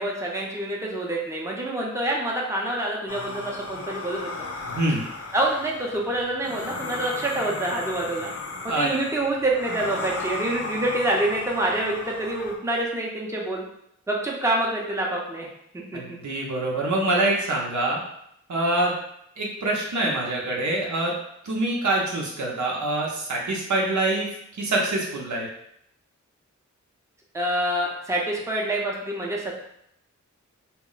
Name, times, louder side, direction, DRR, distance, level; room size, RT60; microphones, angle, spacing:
voice 1, 0.0-4.5 5.3-8.3 8.6-13.6 14.1-15.5 15.7-16.2 27.3-29.5, right 1 dB, 10° right, -2 dB, 0.6 m, -27 dB
sound 1, 3.1-12.6, left 3 dB, 55° left, 0.5 m, -35 dB
voice 2, 15.9-18.0 18.5-18.9 19.4-21.1 21.4-24.3 24.6-25.5, right 2 dB, 75° right, -2 dB, 0.7 m, -25 dB
2.2 x 2.0 x 3.8 m, 0.74 s
cardioid pair, 55°, 29 cm